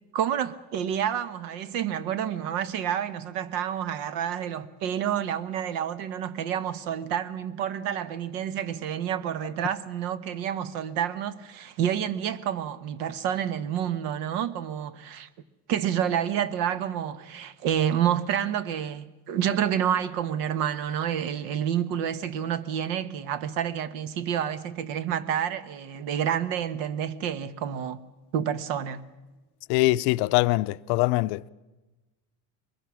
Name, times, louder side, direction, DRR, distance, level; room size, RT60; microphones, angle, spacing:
voice 1, 0.1-15.3 15.7-28.0 28.3-29.0, right 9 dB, 70° right, 1.3 m, -29 dB
voice 2, 29.7-31.4, left 20 dB, 65° left, 0.6 m, -23 dB
23.0 x 21.0 x 6.3 m
cardioid pair, 130°, 43 cm